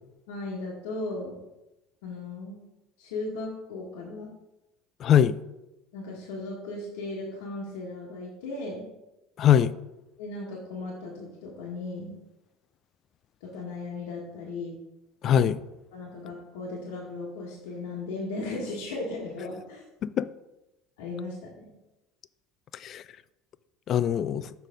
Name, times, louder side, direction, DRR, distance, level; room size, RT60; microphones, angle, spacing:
voice 1, 0.3-1.4 2.0-2.6 3.0-4.3 5.9-8.9 10.2-12.1 13.4-14.8 15.2-15.4 15.9-19.8 21.0-21.7, left 2 dB, 90° left, 1.4 m, -36 dB
voice 2, 5.0-5.4 9.4-9.7 15.2-15.6 20.0-20.3 22.7-23.0 23.9-24.5, left 9 dB, 45° left, 0.3 m, -22 dB
6.4 x 4.1 x 5.0 m
supercardioid pair, 110°, 0 cm